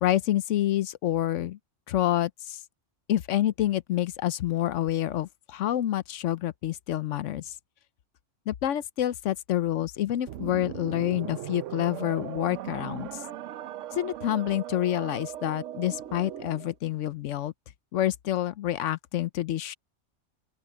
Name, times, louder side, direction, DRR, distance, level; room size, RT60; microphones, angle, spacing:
voice 1, 0.0-1.6 1.9-2.6 3.1-7.5 8.5-13.1 14.0-17.5 17.9-19.7, left 13 dB, 85° left, 1.0 m, -28 dB
sound 1, 10.3-16.7, right 12 dB, 80° right, 1.0 m, -38 dB
open air
omnidirectional pair, 1.3 m